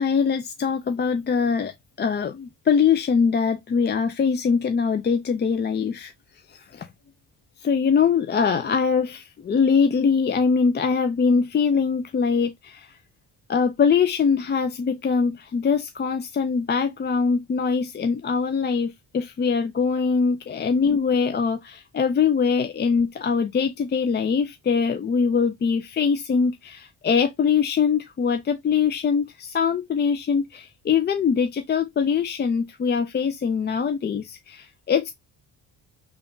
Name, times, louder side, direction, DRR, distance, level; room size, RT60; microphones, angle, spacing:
voice 1, 0.0-6.1 6.5-6.9 7.6-13.0 13.5-35.1, left 6 dB, 25° left, 0.3 m, -23 dB
3.5 x 2.4 x 3.7 m
supercardioid pair, 60°, 44 cm